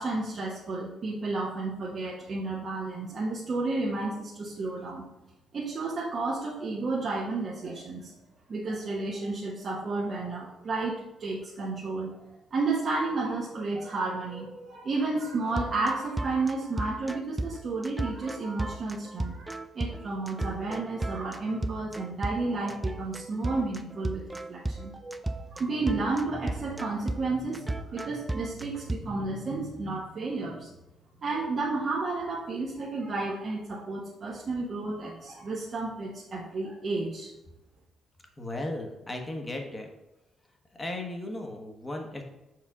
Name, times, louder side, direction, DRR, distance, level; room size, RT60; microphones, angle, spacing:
voice 1, 0.0-5.0 5.5-8.1 8.5-12.2 12.5-24.2 24.5-25.2 25.5-30.7 31.2-37.3, right 3 dB, 45° right, -4 dB, 1.0 m, -32 dB
sound 1, 15.5-29.0, right 2 dB, 15° right, 0.4 m, -34 dB
voice 2, 38.4-39.9 40.7-42.2, left 1 dB, 20° left, 2 dB, 1.1 m, -36 dB
5.5 x 4.7 x 3.6 m, 0.97 s
cardioid pair, 90°, 0 cm